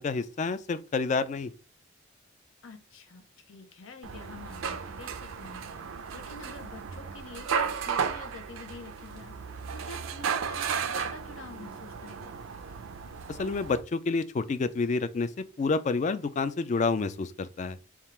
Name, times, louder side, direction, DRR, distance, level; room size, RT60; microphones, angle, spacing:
voice 1, 0.0-1.5 13.3-15.3 15.6-17.8, left 4 dB, 35° left, 0.3 m, -29 dB
voice 2, 2.6-5.6 6.1-12.3, left 3 dB, 90° left, 0.7 m, -47 dB
sound 1, 4.0-13.8, right 6 dB, 85° right, 0.4 m, -34 dB
3.6 x 2.4 x 4.2 m
head